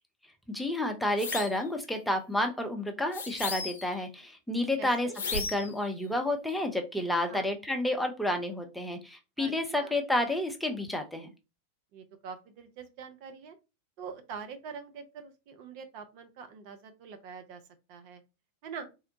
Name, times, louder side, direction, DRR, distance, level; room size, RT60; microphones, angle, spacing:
voice 1, 0.5-11.3, left 1 dB, ahead, 4 dB, 0.5 m, -30 dB
sound 1, 1.2-1.6 3.1-4.0 5.1-5.8, left 4 dB, 65° left, 0.7 m, -35 dB
voice 2, 4.8-5.2 7.3-7.5 9.4-9.9 11.9-13.6 14.0-17.6 17.9-18.2 18.6-18.9, right 6 dB, 45° right, 7 dB, 0.6 m, -44 dB
3.6 x 2.1 x 2.7 m, 0.28 s
figure-of-eight pair, 90°, 0 cm